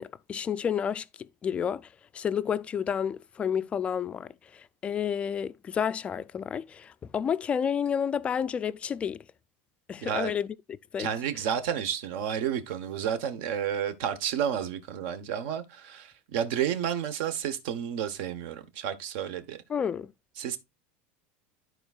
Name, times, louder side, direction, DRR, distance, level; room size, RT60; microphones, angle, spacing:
voice 1, 0.0-9.2 9.9-10.6 10.9-11.1 19.7-20.1, left 8 dB, 20° left, 0.3 m, -30 dB
voice 2, 10.0-10.3 11.0-19.6 20.4-20.6, right 9 dB, 65° right, 1.0 m, -31 dB
13.5 x 4.6 x 2.3 m
supercardioid pair, 155°, 6 cm